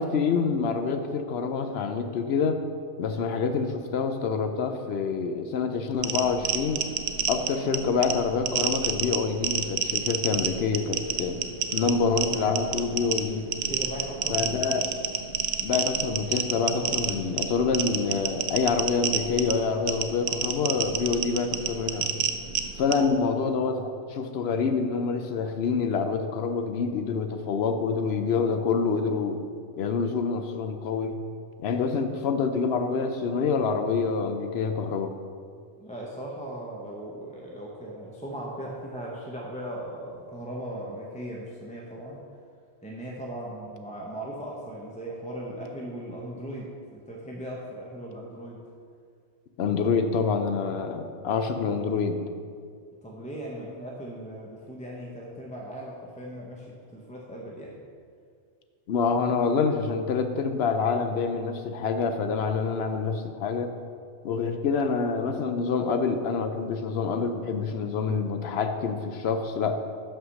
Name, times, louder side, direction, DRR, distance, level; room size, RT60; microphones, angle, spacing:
voice 1, 0.0-2.6 3.0-6.9 7.3-11.4 11.7-13.5 14.3-14.9 15.6-22.1 22.8-29.4 29.8-31.1 31.6-35.1 49.6-52.2 58.9-63.7 64.2-69.7, left 5 dB, 70° left, 7 dB, 0.8 m, -26 dB
sound 1, 6.0-23.1, right 8 dB, 75° right, 0.8 m, -30 dB
voice 2, 13.7-14.8 22.9-23.2 35.8-42.2 42.8-48.6 53.0-57.8, right 1 dB, 10° left, -3 dB, 0.7 m, -38 dB
5.7 x 5.6 x 6.4 m, 2.1 s
omnidirectional pair, 1.1 m